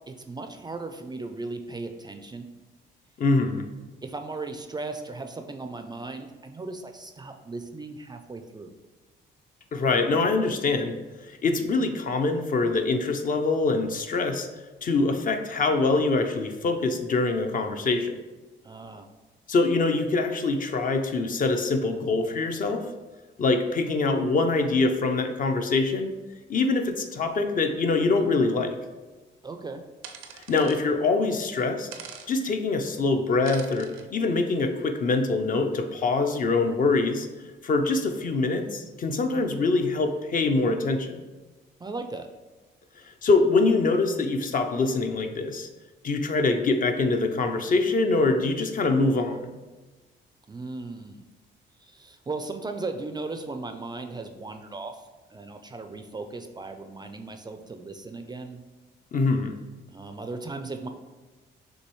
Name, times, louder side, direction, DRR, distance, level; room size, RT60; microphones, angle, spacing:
voice 1, 0.1-2.5 4.0-8.7 18.6-19.1 29.4-29.8 41.8-42.3 50.5-51.2 51.8-54.9 55.3-58.6 59.9-60.9, right 3 dB, 20° right, 6 dB, 0.3 m, -37 dB
voice 2, 3.2-3.7 9.7-10.9 11.2-14.5 14.8-18.2 19.5-22.8 23.4-26.1 26.5-28.8 30.3-31.9 32.3-37.3 37.6-41.2 43.2-45.7 46.0-49.5 59.1-59.5, left 3 dB, 45° left, 6 dB, 0.5 m, -24 dB
sound 1, 30.0-30.8 31.9-32.3 33.5-34.0, right 7 dB, 85° right, 0.5 m, -43 dB
6.2 x 2.7 x 3.0 m, 1.2 s
cardioid pair, 90°, 20 cm